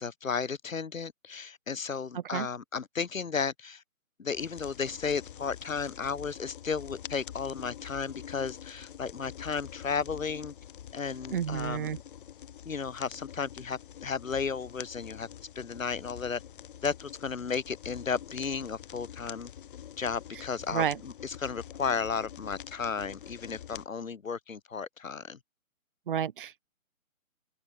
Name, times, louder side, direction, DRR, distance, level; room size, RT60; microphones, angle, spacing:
voice 1, 0.0-3.8 4.2-10.5 10.9-11.9 12.7-15.3 15.6-16.4 16.8-19.5 20.0-25.4, left 5 dB, 65° left, 5.6 m, -34 dB
sound 1, 4.3-23.9, left 9 dB, 35° left, 3.6 m, -46 dB
voice 2, 11.3-12.0 20.7-21.0 26.1-26.6, right 9 dB, 35° right, 1.6 m, -30 dB
open air
hypercardioid pair, 155°, 43 cm